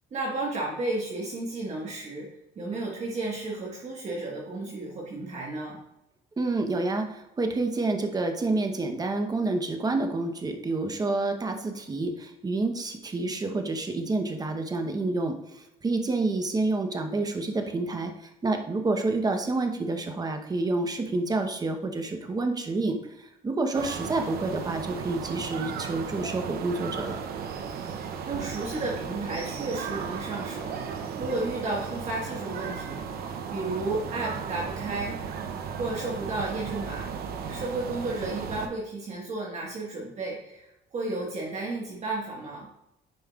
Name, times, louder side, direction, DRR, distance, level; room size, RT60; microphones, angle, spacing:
voice 1, 0.1-2.3 2.5-5.8 27.7-27.8 28.3-30.7 31.2-35.2 35.8-37.2 37.5-42.7, right 2 dB, 40° right, -3 dB, 1.6 m, -33 dB
voice 2, 6.4-27.2, right 2 dB, 25° right, 5 dB, 0.9 m, -28 dB
sound 1, 23.7-38.7, right 6 dB, 65° right, 0.8 m, -35 dB
9.5 x 5.1 x 2.4 m, 0.86 s
cardioid pair, 110°, 17 cm